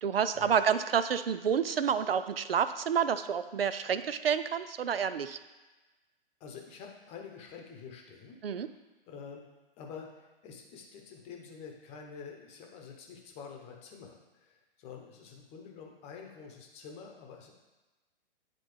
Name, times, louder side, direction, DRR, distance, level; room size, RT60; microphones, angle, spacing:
voice 1, 0.0-5.4 8.4-8.7, right 7 dB, 75° right, 12 dB, 0.5 m, -29 dB
voice 2, 6.4-8.8 9.1-9.4 9.8-17.5, left 6 dB, 20° left, 1 dB, 0.9 m, -48 dB
9.9 x 4.1 x 3.2 m, 1.2 s
figure-of-eight pair, 120°, 29 cm